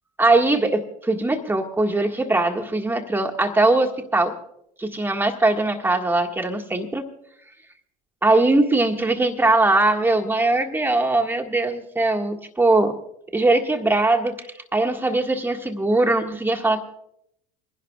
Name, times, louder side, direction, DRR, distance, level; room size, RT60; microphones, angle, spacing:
voice 1, 0.2-4.3 4.8-7.1 8.2-12.9 13.3-14.5 14.7-16.8, right 2 dB, 10° right, 3 dB, 1.8 m, -21 dB
29.0 x 11.0 x 2.4 m, 0.78 s
hypercardioid pair, 90°, 19 cm